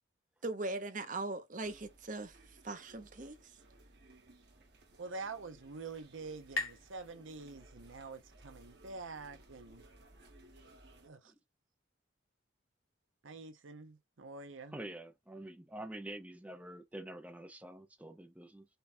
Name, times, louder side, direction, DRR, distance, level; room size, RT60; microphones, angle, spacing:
voice 1, 0.4-2.4 2.6-3.4, right 2 dB, 40° right, 0.8 m, -39 dB
sound 1, 1.6-11.1, right 1 dB, 60° right, 1.3 m, -60 dB
voice 2, 5.0-9.8 11.0-11.3 13.2-14.8, right 3 dB, 85° right, 0.8 m, -46 dB
sound 2, 5.1-8.5, left 3 dB, 90° left, 1.7 m, -45 dB
voice 3, 14.7-18.7, right 1 dB, 5° right, 0.5 m, -47 dB
5.3 x 2.3 x 4.2 m
head